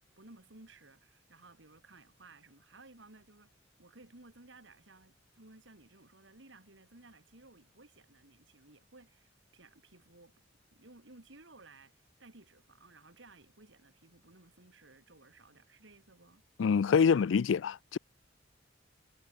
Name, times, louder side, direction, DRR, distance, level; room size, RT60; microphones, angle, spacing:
voice 1, 0.2-3.5 3.8-10.4 10.7-16.4, right 2 dB, 70° right, 2.7 m, -58 dB
voice 2, 16.6-18.0, left 6 dB, 75° left, 0.4 m, -26 dB
head